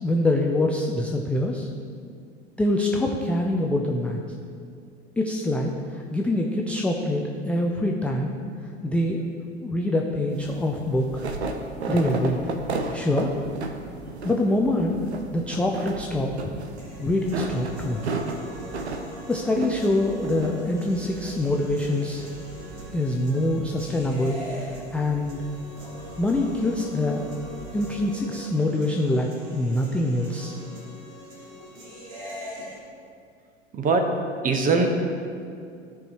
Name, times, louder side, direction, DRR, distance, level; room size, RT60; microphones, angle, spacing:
voice 1, 0.0-1.7 2.6-4.2 5.2-8.3 8.8-9.2 9.6-11.2 11.9-12.4 12.9-13.3 14.2-15.1 15.3-16.3 17.0-18.0 19.3-22.2 22.9-25.4 26.2-27.3 27.7-30.6, left 1 dB, 5° left, 1 dB, 0.3 m, -25 dB
sound 1, 10.3-28.2, right 3 dB, 75° right, 0.8 m, -36 dB
sound 2, 16.8-32.8, equal, 55° right, 1.8 m, -42 dB
voice 2, 33.7-34.2 34.4-34.9, right 4 dB, 25° right, 5 dB, 1.0 m, -21 dB
14.0 x 4.7 x 3.0 m, 2.3 s
figure-of-eight pair, 80°, 34 cm